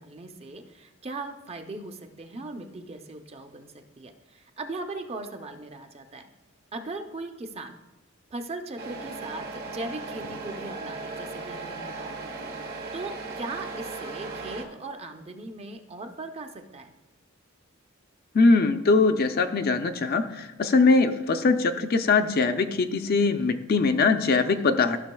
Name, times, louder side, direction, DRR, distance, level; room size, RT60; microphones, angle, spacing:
voice 1, 0.0-6.2 6.7-7.8 8.3-16.9 24.4-24.7, right 2 dB, 30° right, 6 dB, 0.5 m, -39 dB
Truck, 8.8-14.6, right 3 dB, 50° right, 0.9 m, -37 dB
voice 2, 18.3-25.0, left 3 dB, 50° left, 8 dB, 0.4 m, -22 dB
13.5 x 6.1 x 2.2 m, 1.1 s
head